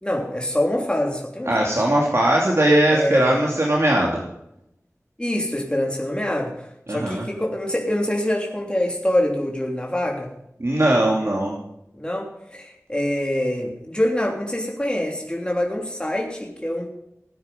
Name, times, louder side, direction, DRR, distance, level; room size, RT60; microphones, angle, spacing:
voice 1, 0.0-1.7 2.9-3.4 5.2-10.3 12.0-16.9, left 1 dB, 20° left, 0 dB, 3.0 m, -25 dB
voice 2, 1.5-4.2 6.9-7.3 10.6-11.6, right 1 dB, 55° right, -2 dB, 2.8 m, -19 dB
17.0 x 9.5 x 5.3 m, 0.80 s
wide cardioid pair, 45°, 5 cm